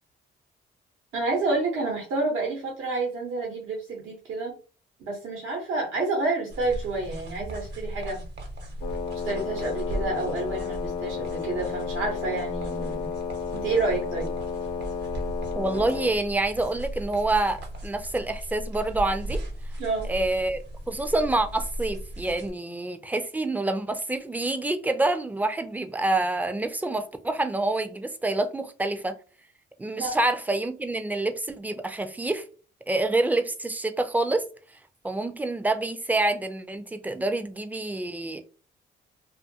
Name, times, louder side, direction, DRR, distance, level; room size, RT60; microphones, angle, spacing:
voice 1, 1.1-4.5 5.0-8.2 9.2-13.1 13.5-14.3 19.8-20.1 30.0-30.2, right 3 dB, 85° right, 0.9 m, -29 dB
sound 1, 6.5-22.5, right 1 dB, 60° right, 0.9 m, -37 dB
Wind instrument woodwind instrument, 8.8-16.2, left 6 dB, 85° left, 0.7 m, -32 dB
voice 2, 15.6-19.4 20.0-29.2 29.8-32.4 32.9-34.4 35.0-38.4, right 2 dB, 10° right, 0.3 m, -27 dB
2.5 x 2.4 x 2.7 m
cardioid pair, 90°, 20 cm